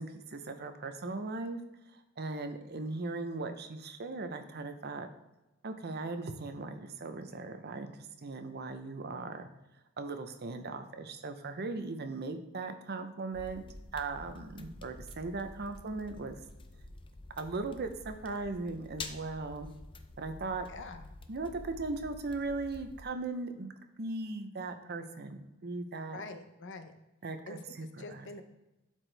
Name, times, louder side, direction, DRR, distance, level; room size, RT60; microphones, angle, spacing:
voice 1, 0.0-1.6 2.2-5.1 5.6-7.9 8.2-9.5 10.0-13.6 13.9-16.4 17.4-19.7 20.2-20.7 21.3-23.7 24.0-26.2 27.2-28.2, right 3 dB, 50° right, 8 dB, 0.7 m, -38 dB
sound 1, 13.3-23.0, left 2 dB, 25° left, 0.5 m, -49 dB
voice 2, 20.7-21.1 26.1-26.9 27.4-28.4, left 3 dB, 60° left, 8 dB, 0.7 m, -46 dB
11.5 x 4.6 x 3.4 m, 0.98 s
head